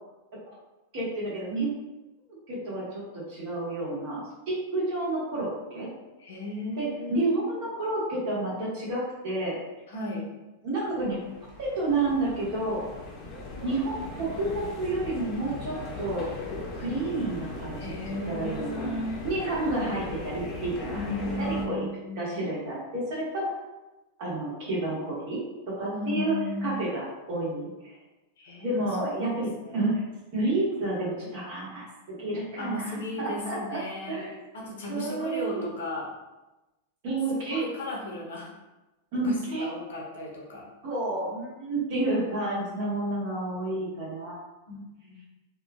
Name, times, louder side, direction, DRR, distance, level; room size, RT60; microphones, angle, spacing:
voice 1, 0.9-1.7 2.5-4.2 4.5-5.9 6.8-9.6 10.6-11.2 11.6-12.8 13.6-16.3 16.7-17.9 18.3-18.9 19.2-21.1 21.4-21.8 22.2-23.5 24.2-25.4 25.7-26.3 26.6-28.0 28.6-30.0 30.3-33.8 34.1-34.4 34.9-35.7 37.0-37.6 39.1-39.7 40.8-44.4, right 2 dB, 60° right, -6 dB, 1.3 m, -30 dB
voice 2, 6.2-7.2 9.9-10.3 17.8-19.2 20.9-22.4 25.9-26.9 28.4-29.7 32.6-34.2 34.5-36.1 37.3-38.5 39.2-40.7 44.7-45.2, left 1 dB, 80° left, -2 dB, 0.8 m, -35 dB
sound 1, 10.8-21.7, left 2 dB, 35° left, 0.7 m, -39 dB
2.9 x 2.3 x 2.4 m, 1.1 s
hypercardioid pair, 120°, 0 cm